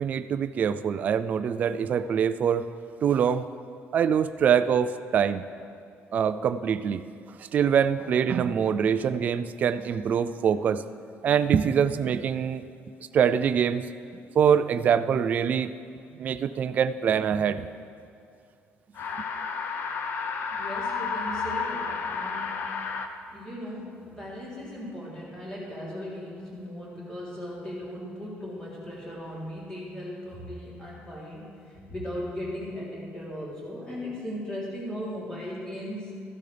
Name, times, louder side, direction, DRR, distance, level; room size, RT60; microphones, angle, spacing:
voice 1, 0.0-2.7 3.0-3.4 3.9-5.4 6.1-7.0 7.5-10.8 11.2-12.6 13.1-13.8 14.4-15.7 16.2-17.7 19.1-19.3, right 8 dB, 35° right, 11 dB, 0.3 m, -24 dB
sound 1, 18.9-23.1, left 5 dB, 45° left, 0.7 m, -31 dB
voice 2, 20.5-22.5 23.3-36.1, equal, 15° left, -7 dB, 3.2 m, -37 dB
14.0 x 12.0 x 3.4 m, 2.4 s
cardioid pair, 170°, 5 cm